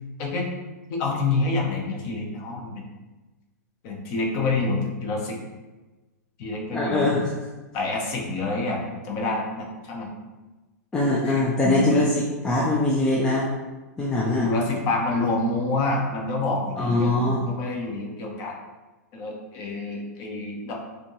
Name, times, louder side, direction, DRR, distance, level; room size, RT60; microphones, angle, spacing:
voice 1, 0.9-2.8 3.8-5.4 6.4-7.2 7.7-10.1 11.2-11.9 14.4-18.5 19.1-20.8, left 3 dB, 35° left, 0 dB, 0.8 m, -27 dB
voice 2, 6.7-7.2 10.9-13.5 14.0-14.5 16.8-17.5, left 2 dB, 10° left, -5 dB, 0.4 m, -22 dB
4.2 x 2.7 x 3.0 m, 1.2 s
hypercardioid pair, 155°, 9 cm